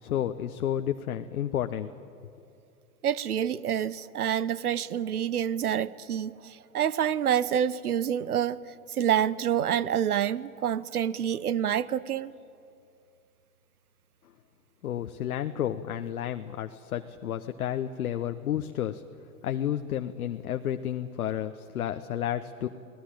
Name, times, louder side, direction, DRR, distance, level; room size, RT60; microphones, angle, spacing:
voice 1, 0.0-1.9 14.8-19.0 19.4-22.7, left 10 dB, 75° left, 7 dB, 1.1 m, -31 dB
voice 2, 3.0-8.6 8.9-12.3, right 9 dB, 85° right, 19 dB, 1.0 m, -27 dB
28.5 x 19.0 x 8.9 m, 2.6 s
hypercardioid pair, 115°, 44 cm